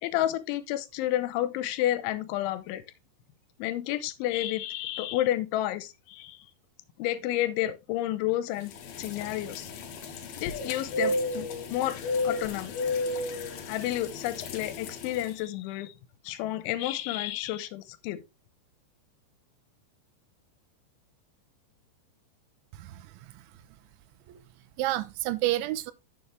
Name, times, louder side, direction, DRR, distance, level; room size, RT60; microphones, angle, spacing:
voice 1, 0.0-2.8 3.6-6.4 7.0-8.7 9.0-9.7 10.4-12.8 13.7-15.9 16.2-18.2, left 14 dB, 90° left, 3.1 m, -30 dB
sound 1, 8.7-15.3, left 2 dB, 65° left, 2.6 m, -33 dB
voice 2, 22.7-23.3 24.3-24.4 24.8-25.9, right 16 dB, 85° right, 3.0 m, -30 dB
9.7 x 6.7 x 3.3 m
omnidirectional pair, 5.4 m